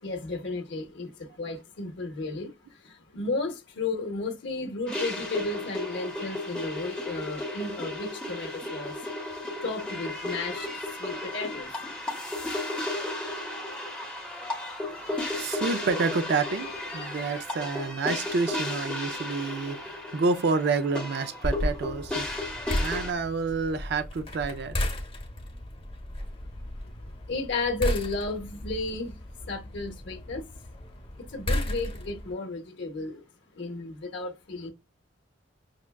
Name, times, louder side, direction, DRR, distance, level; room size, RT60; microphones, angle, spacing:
voice 1, 0.0-9.0 9.6-11.7 26.8-26.9 27.3-29.2 29.4-30.4 31.2-33.2 33.5-34.7, left 3 dB, 65° left, 0.7 m, -33 dB
sound 1, 4.9-23.1, left 2 dB, 5° left, 0.8 m, -34 dB
voice 2, 14.8-16.7 16.9-22.3 22.8-24.9, right 4 dB, 55° right, 0.4 m, -29 dB
sound 2, 21.4-32.3, left 1 dB, 30° left, 1.0 m, -34 dB
6.2 x 2.2 x 2.2 m
head